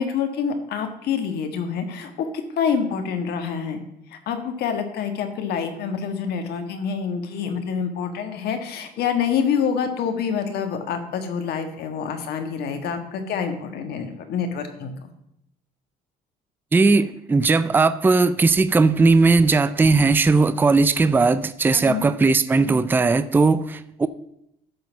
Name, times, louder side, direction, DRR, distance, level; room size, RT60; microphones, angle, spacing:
voice 1, 0.0-2.3 2.5-3.8 4.1-14.9 21.7-22.1, left 7 dB, 70° left, 1.5 m, -26 dB
voice 2, 16.7-24.1, right 3 dB, 10° right, 0.4 m, -18 dB
12.0 x 4.0 x 7.1 m
cardioid pair, 110°, 17 cm